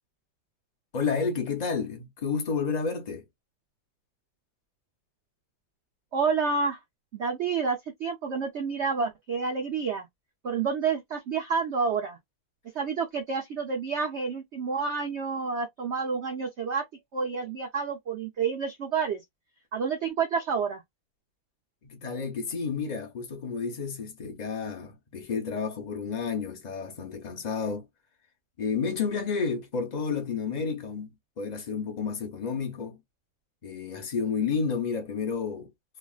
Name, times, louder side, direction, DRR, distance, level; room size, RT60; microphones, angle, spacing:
voice 1, 0.9-3.2 21.8-27.9 28.6-31.1 31.4-33.0 33.6-35.7, left 5 dB, 65° left, 0.4 m, -31 dB
voice 2, 6.1-6.8 7.1-10.1 10.4-12.2 12.7-16.8 17.1-19.2 19.7-20.8, right 5 dB, 80° right, 0.6 m, -29 dB
3.4 x 2.3 x 2.3 m
omnidirectional pair, 2.0 m